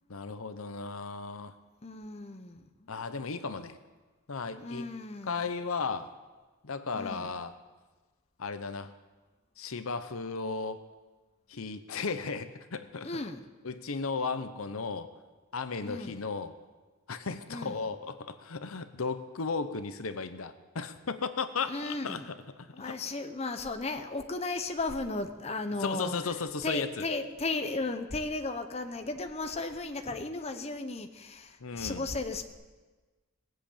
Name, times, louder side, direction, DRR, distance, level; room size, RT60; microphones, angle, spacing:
voice 1, 0.1-1.5 2.9-3.8 4.3-4.9 5.3-6.1 6.6-7.5 8.4-8.9 9.6-10.8 11.5-13.1 13.6-15.1 15.5-16.6 17.1-22.8 25.8-27.1 31.6-32.1, left 4 dB, 75° left, 11 dB, 0.8 m, -35 dB
voice 2, 1.8-2.9 4.6-5.4 6.9-7.3 13.0-13.4 15.8-16.2 17.5-17.8 21.7-22.3 22.7-26.3 26.6-32.5, left 3 dB, 30° left, 7 dB, 0.8 m, -35 dB
18.5 x 7.7 x 8.6 m, 1.3 s
head